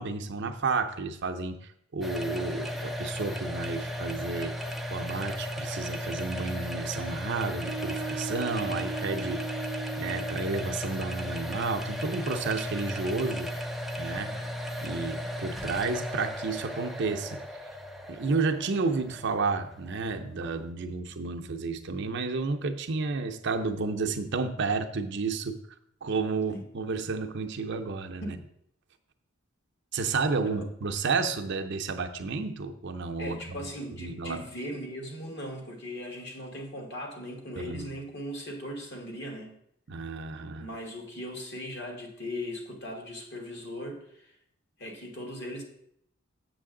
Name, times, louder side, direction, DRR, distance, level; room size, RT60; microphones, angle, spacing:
voice 1, 0.0-1.6 1.9-4.6 4.9-9.5 10.0-13.5 14.0-14.4 14.8-17.4 18.1-25.6 26.0-28.4 29.9-33.7 34.0-34.4 37.6-37.9 39.9-40.7, right 4 dB, 60° right, 5 dB, 0.6 m, -31 dB
sound 1, 2.0-20.7, equal, ahead, 0.4 m, -36 dB
sound 2, 7.5-10.5, right 5 dB, 30° left, 1.3 m, -38 dB
voice 2, 33.2-39.5 40.6-44.3 44.8-45.6, equal, 55° left, 2 dB, 1.6 m, -39 dB
7.6 x 6.6 x 3.8 m, 0.72 s
head